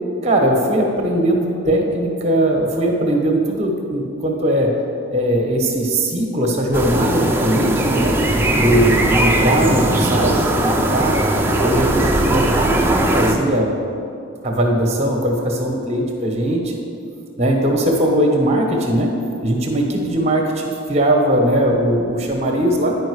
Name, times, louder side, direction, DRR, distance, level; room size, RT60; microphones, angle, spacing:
voice 1, 0.2-4.8 5.1-8.2 8.5-11.2 11.6-12.8 13.1-13.7 14.4-16.8 17.4-19.1 19.4-23.0, right 1 dB, 30° right, 1 dB, 1.0 m, -19 dB
sound 1, 6.7-13.3, right 1 dB, 10° right, 0.5 m, -18 dB
10.5 x 5.0 x 4.7 m, 2.5 s
head